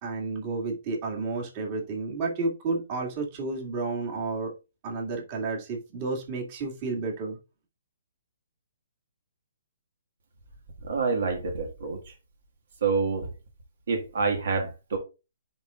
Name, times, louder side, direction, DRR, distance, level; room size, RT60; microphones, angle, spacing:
voice 1, 0.0-4.5 4.8-7.4, right 3 dB, 30° right, 2.2 m, -31 dB
voice 2, 10.8-12.1 12.8-13.3 13.9-15.0, right 4 dB, 65° right, 1.8 m, -27 dB
10.0 x 4.1 x 2.5 m
hypercardioid pair, 160°, 0 cm